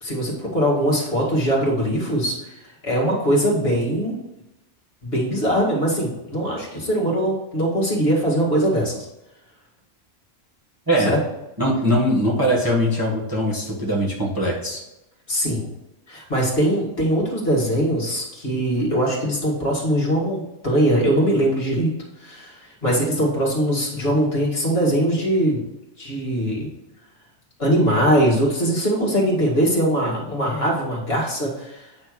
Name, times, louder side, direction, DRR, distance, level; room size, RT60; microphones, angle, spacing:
voice 1, 0.0-2.5 2.8-4.2 5.0-9.1 11.1-11.2 15.3-15.7 16.1-21.9 22.2-25.6 26.0-26.7 27.6-31.9, right 1 dB, 50° left, -4 dB, 2.3 m, -21 dB
voice 2, 11.6-14.8, equal, 15° right, -4 dB, 1.4 m, -21 dB
8.8 x 3.4 x 6.1 m, 0.94 s
omnidirectional pair, 1.3 m